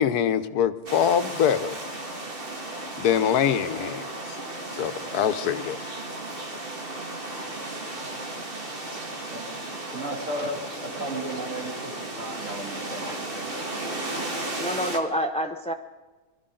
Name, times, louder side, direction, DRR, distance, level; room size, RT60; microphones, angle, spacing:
voice 1, 0.0-1.8 3.0-4.4 4.7-5.8, left 8 dB, 85° left, 12 dB, 1.3 m, -24 dB
sound 1, 0.9-15.0, right 2 dB, 35° right, 2.1 m, -35 dB
voice 2, 9.3-13.7, right 1 dB, 55° right, -1 dB, 3.3 m, -35 dB
voice 3, 14.6-15.7, equal, 5° left, 7 dB, 0.5 m, -27 dB
22.5 x 13.5 x 3.9 m, 1.3 s
omnidirectional pair, 1.6 m